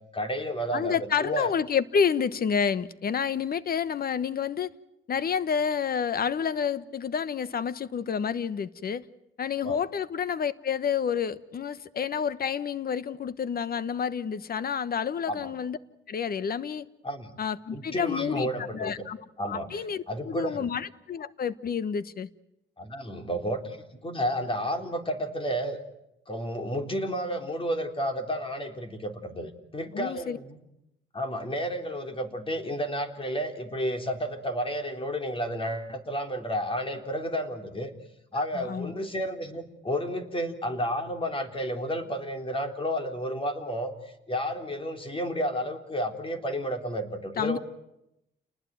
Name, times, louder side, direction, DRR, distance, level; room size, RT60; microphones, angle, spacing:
voice 1, 0.1-1.5 9.6-9.8 15.3-15.5 17.0-17.3 17.7-19.0 19.4-20.7 22.8-25.8 26.3-30.6 31.1-37.9 38.3-47.6, equal, 25° left, 3.7 m, -31 dB
voice 2, 0.7-4.7 5.1-9.0 9.4-15.8 16.1-16.9 17.4-19.2 19.4-22.3 29.9-30.4 38.3-38.9 47.4-47.6, left 7 dB, 50° left, 1.2 m, -29 dB
29.5 x 20.0 x 9.3 m
cardioid pair, 90°, 20 cm